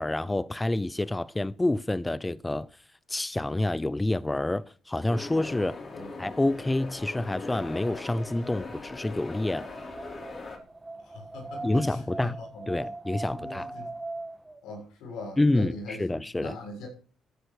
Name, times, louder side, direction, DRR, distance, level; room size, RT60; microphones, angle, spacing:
voice 1, 0.0-2.7 3.1-5.8 6.2-9.7 11.6-12.4 12.7-13.7 15.4-16.6, left 2 dB, 15° left, 0.6 m, -28 dB
sound 1, 5.1-10.6, left 3 dB, 40° left, 5.9 m, -40 dB
Wind, 6.9-14.6, right 2 dB, 15° right, 1.7 m, -41 dB
voice 2, 11.1-11.9 12.2-12.3 12.5-12.6 13.3-13.9 14.6-16.0 16.4-16.9, left 2 dB, 90° left, 7.0 m, -41 dB
14.5 x 10.0 x 6.6 m
cardioid pair, 90°, 0 cm